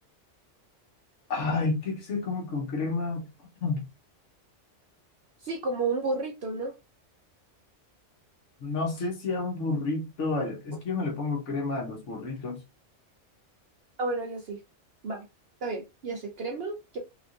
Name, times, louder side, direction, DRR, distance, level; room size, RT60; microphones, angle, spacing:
voice 1, 1.3-3.3 3.6-3.9 8.6-12.6, left 3 dB, 75° left, 1.4 m, -30 dB
voice 2, 5.4-6.7 14.0-14.6 15.0-15.2 15.6-17.0, right 3 dB, 60° right, 0.9 m, -31 dB
3.4 x 3.4 x 2.5 m
omnidirectional pair, 1.2 m